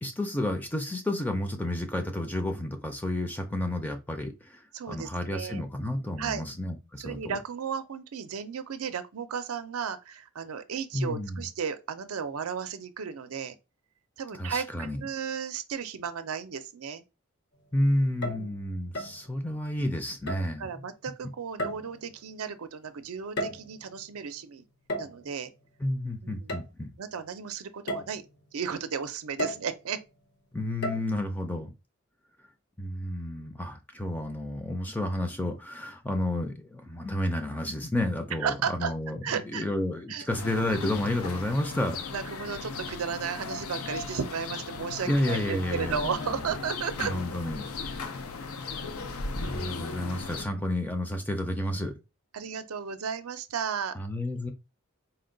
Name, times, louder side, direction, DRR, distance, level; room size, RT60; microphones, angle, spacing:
voice 1, 0.0-4.6 4.9-7.4 10.9-11.5 14.3-15.0 17.7-20.7 25.8-26.9 30.5-31.7 32.8-42.0 45.1-46.5 47.0-47.7 49.3-51.9 53.9-54.5, left 1 dB, 10° left, 0.5 m, -31 dB
voice 2, 4.7-5.6 6.2-6.4 7.0-13.6 14.2-17.0 18.2-18.5 20.6-24.6 25.0-25.5 26.2-26.5 27.0-28.2 28.5-30.0 38.4-38.9 39.2-39.6 40.1-40.3 42.1-47.1 52.3-54.0, right 6 dB, 75° right, 0.5 m, -34 dB
sound 1, 18.1-18.5 18.9-19.2 20.3-20.6 21.6-22.1 23.1-23.9 24.9-25.3 26.5-26.7 27.2-27.3 27.9-28.2 29.4-29.8 30.8-31.0, equal, 50° left, 0.8 m, -34 dB
sound 2, 40.3-50.5, left 4 dB, 80° left, 0.5 m, -37 dB
4.3 x 2.2 x 3.8 m
head